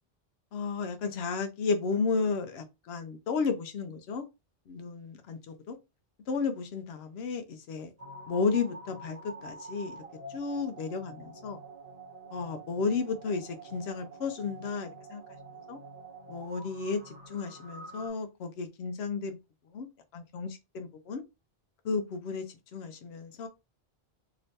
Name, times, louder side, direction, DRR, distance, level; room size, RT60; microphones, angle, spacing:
voice 1, 0.5-4.2 4.7-5.8 6.3-7.9 8.3-10.0 10.3-11.6 12.3-15.2 15.7-15.8 16.3-19.4 19.7-19.9 20.1-21.2 21.8-22.5 22.7-23.5, left 4 dB, 85° left, 0.9 m, -33 dB
sound 1, 8.0-18.1, right 2 dB, 35° right, 1.3 m, -47 dB
3.2 x 2.9 x 2.8 m
omnidirectional pair, 1.0 m